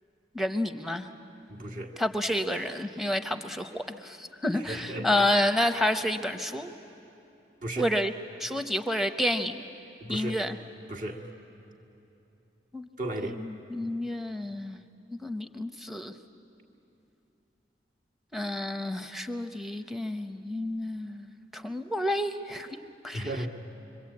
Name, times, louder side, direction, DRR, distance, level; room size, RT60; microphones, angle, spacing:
voice 1, 0.3-1.1 2.0-6.7 7.8-8.1 8.4-9.6 10.1-10.6 12.7-12.9 13.2-14.8 15.1-16.1 18.3-22.8 23.0-23.3, left 1 dB, ahead, 8 dB, 0.8 m, -30 dB
voice 2, 1.5-1.9 4.7-5.3 7.6-7.9 10.0-10.4 10.9-11.2 13.0-13.4 23.1-23.5, right 1 dB, 50° right, 1 dB, 1.8 m, -34 dB
26.5 x 24.0 x 8.6 m, 2.9 s
head